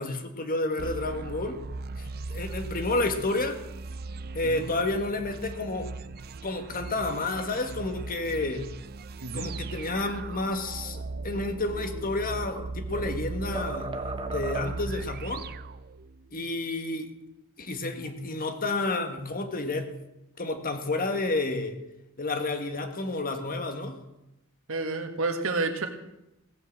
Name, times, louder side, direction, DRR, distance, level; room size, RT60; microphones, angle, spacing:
voice 1, 0.0-1.6 2.0-3.6 4.3-5.9 6.4-8.7 9.3-15.5 16.3-17.1 17.6-20.0 20.4-21.8 22.2-24.0, left 2 dB, 40° left, 7 dB, 1.6 m, -30 dB
sound 1, 0.8-16.4, right 3 dB, 45° right, 0.5 m, -38 dB
sound 2, 11.9-13.2 13.6-15.0, right 2 dB, 25° right, 1.0 m, -36 dB
voice 2, 24.7-25.9, right 3 dB, 65° right, 6 dB, 1.7 m, -30 dB
17.0 x 7.9 x 7.4 m, 0.91 s
head